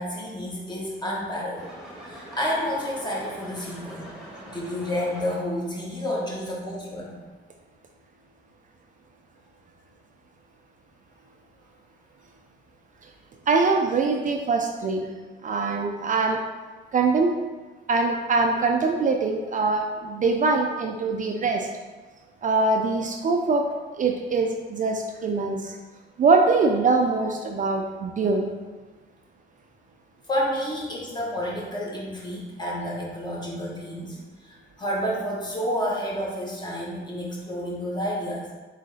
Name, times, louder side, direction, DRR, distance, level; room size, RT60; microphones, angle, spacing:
voice 1, 0.0-1.7 2.1-4.1 4.4-7.2 30.3-34.2 34.4-38.4, equal, 20° left, -4 dB, 1.3 m, -30 dB
sound 1, 1.6-5.7, equal, ahead, 1.3 m, -43 dB
voice 2, 13.5-15.1 15.4-16.4 16.9-17.3 17.9-21.7 22.4-23.7 24.0-25.7 26.2-28.5, right 3 dB, 40° right, 3 dB, 0.4 m, -23 dB
3.8 x 3.2 x 4.0 m, 1.3 s
cardioid pair, 90°, 20 cm